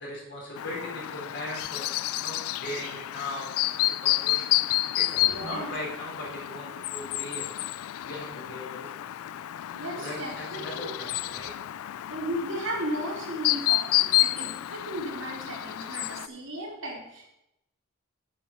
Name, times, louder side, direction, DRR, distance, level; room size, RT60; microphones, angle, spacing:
voice 1, 0.0-4.6 5.0-7.7 8.0-9.4 9.9-11.5 11.8-12.0, left 1 dB, 55° left, -4 dB, 3.7 m, -39 dB
Chirp tweet, 0.6-16.3, left 16 dB, 85° left, 0.3 m, -30 dB
voice 2, 5.2-5.7 9.7-10.9 12.1-17.3, right 1 dB, 65° right, -3 dB, 3.0 m, -35 dB
7.7 x 7.0 x 5.9 m, 0.83 s
head